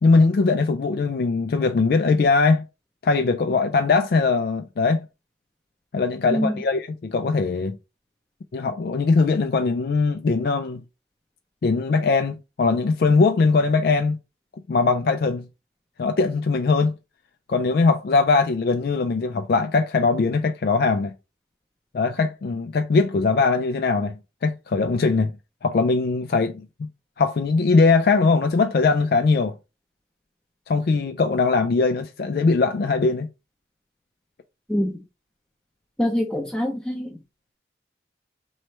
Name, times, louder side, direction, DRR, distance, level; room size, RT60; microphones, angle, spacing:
voice 1, 0.0-2.6 3.0-5.1 5.9-7.8 8.5-10.8 11.6-14.2 14.7-15.5 16.0-16.9 17.5-21.1 21.9-25.3 25.6-26.9 27.2-29.5 30.7-33.3, left 4 dB, 55° left, 0.3 m, -21 dB
voice 2, 36.0-37.1, equal, 5° left, 0.6 m, -24 dB
3.2 x 3.0 x 4.3 m
head